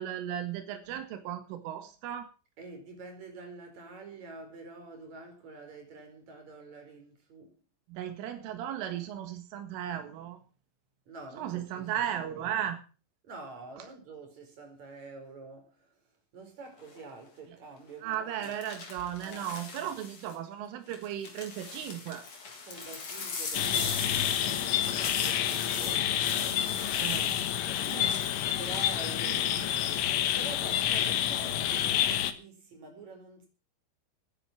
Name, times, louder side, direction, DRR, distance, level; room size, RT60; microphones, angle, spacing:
voice 1, 0.0-2.3 7.9-10.4 11.4-12.8 18.0-22.2 27.0-27.3 27.9-28.1, right 10 dB, 90° right, 4.3 m, -36 dB
voice 2, 2.6-7.6 11.1-12.7 13.2-16.0 16.3-18.6 19.2-19.5 22.6-26.0 27.7-30.1 30.3-33.5, right 3 dB, 35° right, 5.7 m, -47 dB
sound 1, 16.8-17.1 18.4-20.3 20.9-30.2 30.5-31.0, left 4 dB, 40° left, 4.0 m, -40 dB
sound 2, 23.5-32.3, left 11 dB, 80° left, 3.7 m, -29 dB
13.5 x 10.5 x 7.2 m
omnidirectional pair, 5.5 m